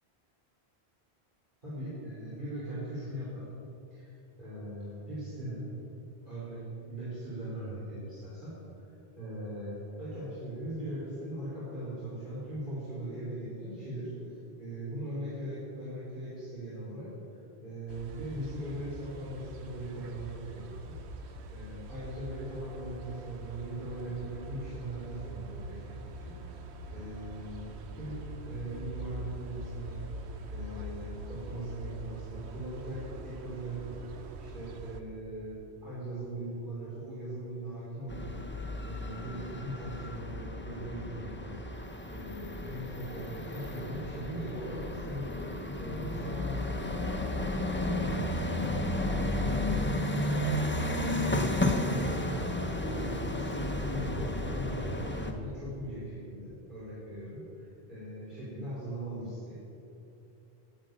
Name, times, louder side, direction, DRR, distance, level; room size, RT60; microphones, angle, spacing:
voice 1, 1.6-3.5 3.9-5.6 6.2-17.1 17.6-28.2 28.4-30.0 30.5-33.9 34.4-38.2 38.9-41.6 42.1-45.3 45.8-47.1 47.4-48.6 49.1-50.5 51.0-52.5 52.8-59.6, right 1 dB, 50° right, -10 dB, 3.4 m, -40 dB
sound 1, 17.9-35.0, right 2 dB, 85° right, 1.1 m, -43 dB
sound 2, 38.1-55.3, left 1 dB, 10° left, 0.9 m, -33 dB
10.5 x 8.1 x 9.0 m, 2.8 s
omnidirectional pair, 1.1 m